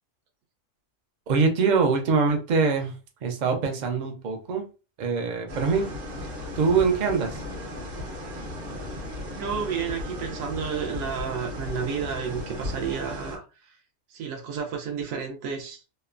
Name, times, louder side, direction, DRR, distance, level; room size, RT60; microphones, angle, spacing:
voice 1, 1.3-3.0 3.2-4.6 5.0-5.9 6.6-7.4, right 5 dB, 70° right, 4 dB, 0.4 m, -23 dB
sound 1, 5.5-13.4, left 1 dB, 50° right, 0.8 m, -36 dB
voice 2, 9.4-13.8 14.1-15.8, right 6 dB, 90° right, 2 dB, 1.0 m, -31 dB
3.0 x 2.1 x 2.4 m, 0.33 s
omnidirectional pair, 1.4 m